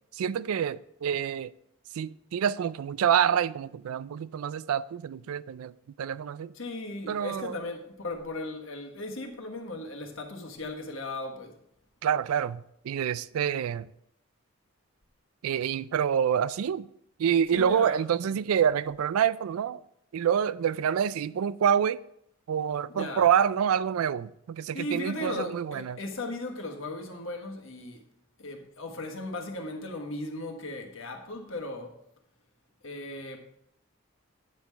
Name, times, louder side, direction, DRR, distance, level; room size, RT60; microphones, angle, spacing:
voice 1, 0.1-1.5 1.9-5.7 6.0-6.5 7.1-7.6 12.0-13.9 15.4-16.9 17.2-19.8 20.1-22.0 22.5-26.0, right 8 dB, 85° right, 0.3 m, -27 dB
voice 2, 6.5-11.5 17.5-18.0 22.9-23.3 24.7-28.0 28.4-31.9 32.8-33.4, left 2 dB, 65° left, 1.4 m, -37 dB
9.0 x 5.6 x 4.6 m
head